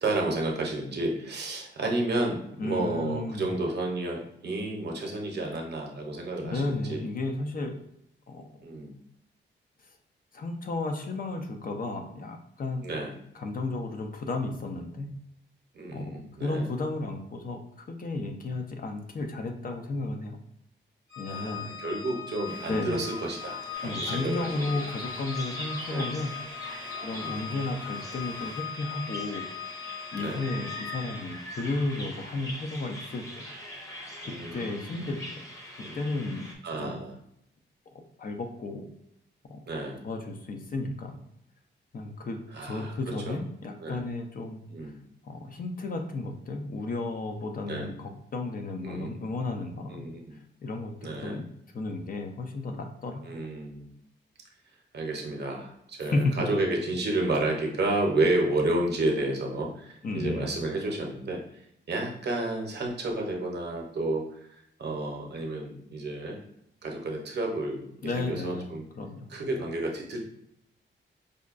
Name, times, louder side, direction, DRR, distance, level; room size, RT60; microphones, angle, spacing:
voice 1, 0.0-7.0 8.6-8.9 12.8-13.1 15.7-16.7 21.3-24.8 25.9-26.1 27.1-27.5 30.2-30.5 34.2-35.1 35.8-36.0 36.6-37.1 39.7-40.0 42.5-42.9 43.3-43.4 43.8-44.0 44.7-44.9 47.6-47.9 48.8-49.1 49.9-50.3 51.0-51.4 53.2-53.9 54.9-61.4 61.9-66.4 66.8-68.8 69.3-70.2, right 2 dB, 60° right, 1 dB, 0.7 m, -31 dB
voice 2, 2.6-3.5 6.4-7.8 8.3-8.6 10.3-12.9 13.3-15.1 15.9-20.4 21.2-21.7 22.7-23.0 23.8-26.4 27.0-29.5 30.1-33.5 34.5-35.4 36.0-36.5 36.8-37.0 37.9-38.9 39.5-39.6 40.0-41.2 41.9-44.9 45.2-50.1 50.6-51.4 51.7-53.2 56.1-56.6 60.0-60.5 68.0-68.7 69.0-69.3, left 2 dB, 45° left, 4 dB, 0.5 m, -33 dB
Organ, 21.1-31.5, left 7 dB, 65° left, 1.1 m, -40 dB
sound 1, 22.4-28.6, right 2 dB, 25° right, 0.7 m, -48 dB
Bird vocalization bird call bird song, 23.7-36.5, equal, 15° left, 0.7 m, -42 dB
5.0 x 2.2 x 2.4 m, 0.76 s
wide cardioid pair, 130°, 20 cm